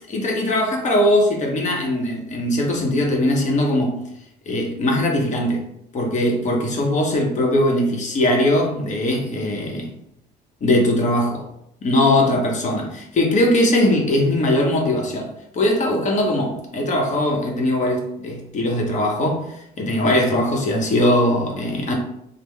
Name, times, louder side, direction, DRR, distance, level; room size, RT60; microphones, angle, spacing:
voice 1, 0.1-4.0 4.5-5.6 5.9-9.9 10.6-11.4 11.8-21.9, left 1 dB, 45° left, 0.9 m, -20 dB
3.6 x 2.0 x 3.2 m
cardioid pair, 110°, 17 cm